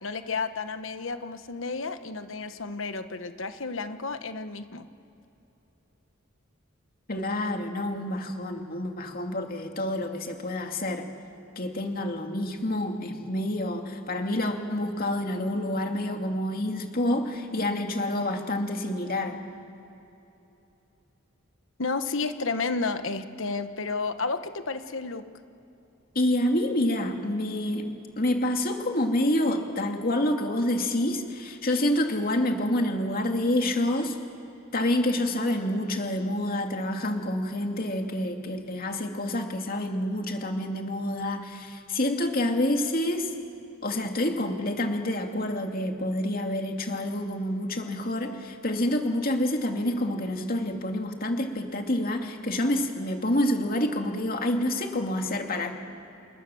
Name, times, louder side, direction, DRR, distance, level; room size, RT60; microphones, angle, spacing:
voice 1, 0.0-4.9 21.8-25.2, left 4 dB, 75° left, 9 dB, 1.2 m, -31 dB
voice 2, 7.1-11.1 11.6-19.4 26.1-34.2 34.7-43.3 43.8-55.7, left 1 dB, 45° left, 3 dB, 2.4 m, -28 dB
28.5 x 20.5 x 7.1 m, 3.0 s
head